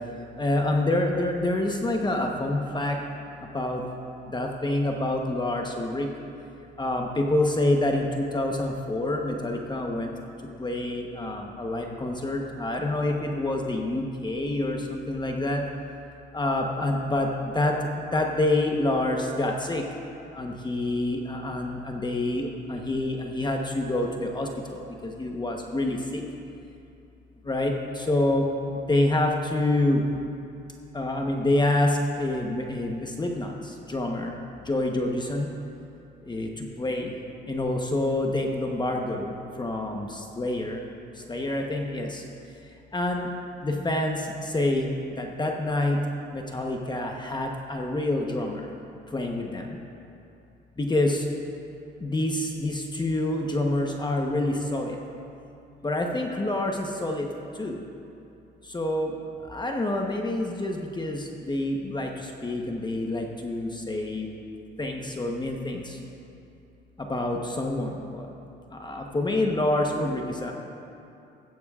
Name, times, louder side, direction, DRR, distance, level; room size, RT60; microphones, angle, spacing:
voice 1, 0.4-3.0 3.5-3.8 4.3-6.1 6.8-10.1 10.6-15.6 16.3-19.8 20.3-26.2 27.4-30.0 30.9-34.4 34.6-35.5 36.3-37.1 37.5-40.8 41.2-42.2 42.9-43.3 43.6-44.9 45.2-46.0 46.3-48.7 49.1-49.8 50.8-51.3 52.0-55.0 55.8-57.3 57.5-57.8 58.6-59.1 59.5-64.3 64.8-66.0 67.0-68.3 68.7-70.5, left 1 dB, 20° left, 1 dB, 1.0 m, -27 dB
15.0 x 14.0 x 2.5 m, 2.7 s
cardioid pair, 90°, 20 cm